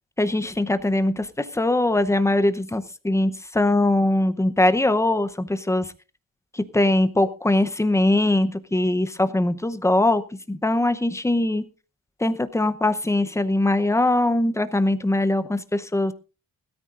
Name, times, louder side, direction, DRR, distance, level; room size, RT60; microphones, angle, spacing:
voice 1, 0.2-5.9 6.5-10.2 10.5-11.6 12.2-16.1, left 1 dB, 10° left, 11 dB, 0.7 m, -21 dB
20.5 x 13.0 x 2.5 m, 0.33 s
wide cardioid pair, 165°, 33 cm